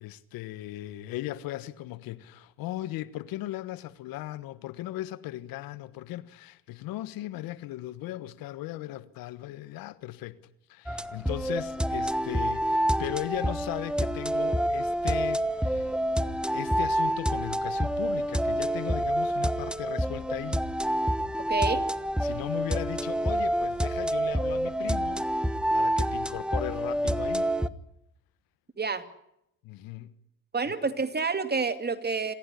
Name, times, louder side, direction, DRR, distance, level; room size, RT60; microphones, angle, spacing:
voice 1, 0.0-16.0 16.5-20.6 22.2-27.6 29.6-30.1 30.6-30.7, left 15 dB, 80° left, 1.4 m, -37 dB
sound 1, 10.9-27.7, right 1 dB, 5° right, 1.2 m, -28 dB
voice 2, 21.5-21.8 28.8-29.0 30.5-32.3, right 4 dB, 30° right, 2.7 m, -28 dB
27.0 x 16.0 x 9.9 m
supercardioid pair, 70°, 34 cm